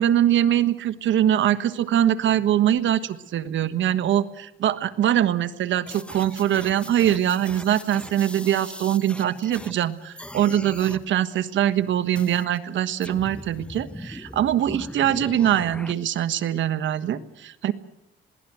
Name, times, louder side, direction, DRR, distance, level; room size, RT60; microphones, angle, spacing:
voice 1, 0.0-17.7, right 11 dB, 70° right, 12 dB, 1.3 m, -23 dB
sound 1, 5.9-9.8 10.2-11.0 12.2-12.6 13.0-15.9, left 1 dB, 5° left, 1.0 m, -40 dB
22.0 x 17.0 x 9.2 m, 0.84 s
cardioid pair, 90°, 20 cm